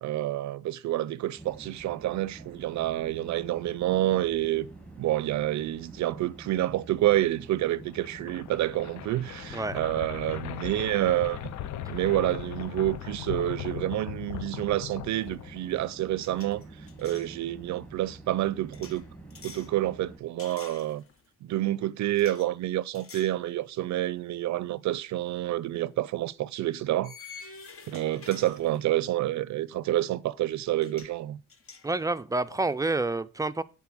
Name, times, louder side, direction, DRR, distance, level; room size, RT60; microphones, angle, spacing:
voice 1, 0.0-4.7 5.0-11.5 11.9-19.0 19.4-21.0 21.4-27.4 27.9-31.4, right 14 dB, 65° right, 0.5 m, -28 dB
sound 1, 1.4-20.2, right 2 dB, 5° left, 1.7 m, -48 dB
sound 2, 7.9-15.9, left 13 dB, 70° left, 0.5 m, -39 dB
sound 3, 15.2-15.4 15.7-17.3 18.7-19.7 20.4-21.3 22.1-22.5 22.9-23.4 23.9-24.0 25.5-25.7 27.0-29.1 30.5-30.6 30.8-31.2 31.5-33.0, left 5 dB, 45° left, 1.1 m, -49 dB
voice 2, 31.8-33.6, right 2 dB, 10° right, 0.4 m, -28 dB
7.2 x 4.2 x 6.0 m
cardioid pair, 90°, 30 cm